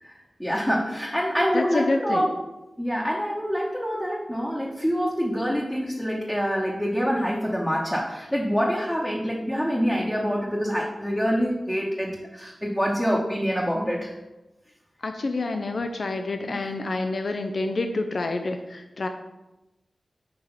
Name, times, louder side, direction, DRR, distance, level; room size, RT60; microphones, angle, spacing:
voice 1, 0.0-2.3 2.8-14.1 16.5-16.6, equal, 5° left, -4 dB, 1.1 m, -26 dB
voice 2, 1.5-2.3 15.0-19.1, left 2 dB, 65° left, 6 dB, 0.4 m, -28 dB
5.8 x 3.3 x 5.5 m, 1.0 s
cardioid pair, 50°, 0 cm